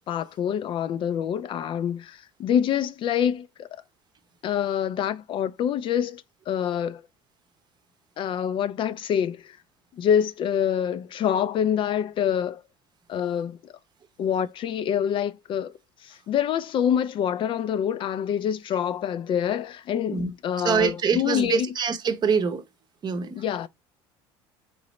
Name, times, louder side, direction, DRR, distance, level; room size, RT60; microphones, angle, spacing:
voice 1, 0.1-3.8 4.4-7.0 8.2-9.6 10.0-12.6 13.1-13.7 14.2-15.7 16.0-21.7 23.3-23.7, left 9 dB, 45° left, 0.4 m, -26 dB
voice 2, 20.6-22.6 23.0-23.4, right 6 dB, 40° right, 0.7 m, -25 dB
3.8 x 3.0 x 3.1 m
supercardioid pair, 90°, 12 cm